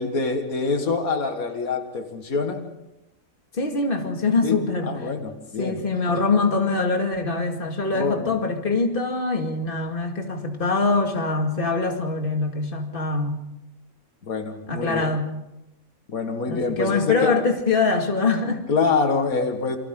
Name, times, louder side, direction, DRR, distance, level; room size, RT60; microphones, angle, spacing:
voice 1, 0.0-2.7 4.4-4.6 4.8-5.8 7.9-8.3 14.3-15.1 16.1-17.4 18.7-19.8, left 4 dB, 80° left, 5 dB, 2.2 m, -25 dB
voice 2, 3.5-4.9 5.6-13.4 14.7-15.3 16.5-18.6, left 3 dB, 40° left, 3 dB, 2.4 m, -23 dB
28.5 x 24.0 x 3.8 m, 0.90 s
omnidirectional pair, 1.5 m